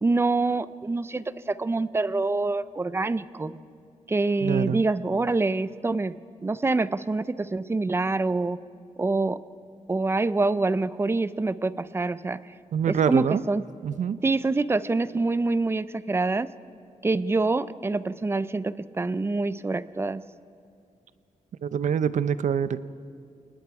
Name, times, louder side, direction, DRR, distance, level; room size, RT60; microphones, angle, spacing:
voice 1, 0.0-3.6 4.1-6.2 6.4-8.6 9.0-9.4 9.9-12.4 12.9-13.6 14.2-16.5 17.0-20.2, right 3 dB, 20° right, 16 dB, 0.4 m, -26 dB
voice 2, 4.4-4.8 12.7-13.4 13.8-14.2 21.6-22.9, right 8 dB, 65° right, 15 dB, 0.6 m, -25 dB
28.5 x 19.5 x 4.8 m, 2.4 s
wide cardioid pair, 140°, 14 cm